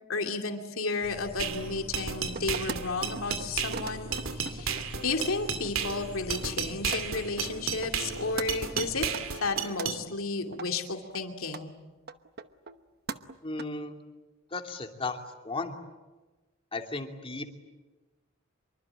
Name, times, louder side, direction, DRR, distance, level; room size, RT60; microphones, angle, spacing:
voice 1, 0.1-9.1 9.4-11.7, left 3 dB, 85° left, 5 dB, 2.6 m, -33 dB
sound 1, 1.0-9.1, equal, 45° left, 3.5 m, -44 dB
sound 2, 1.4-10.0, right 6 dB, 75° right, 2.5 m, -33 dB
sound 3, 2.4-2.8 3.2-3.5 3.7-5.7 6.0-6.6 6.9-7.0 7.5-7.6 7.8-8.1 8.4-8.5 8.8-9.9 10.5-10.7 11.1-11.2 11.5-11.6 12.1-12.8 13.1-13.6, right 5 dB, 50° right, 1.1 m, -39 dB
voice 2, 13.4-14.0 14.5-15.2 15.4-15.7 16.7-17.5, left 3 dB, 25° left, 4 dB, 2.8 m, -35 dB
26.0 x 24.0 x 9.0 m, 1.2 s
head